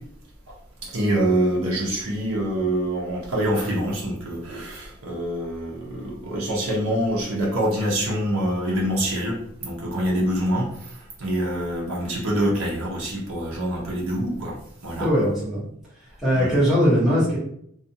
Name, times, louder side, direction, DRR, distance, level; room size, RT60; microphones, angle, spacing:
voice 1, 0.8-10.9 11.2-14.6 14.8-15.1 16.4-16.6, right 1 dB, 80° right, -4 dB, 0.8 m, -25 dB
voice 2, 15.0-15.6 16.2-17.4, equal, ahead, -11 dB, 1.0 m, -20 dB
2.5 x 2.3 x 2.7 m, 0.69 s
head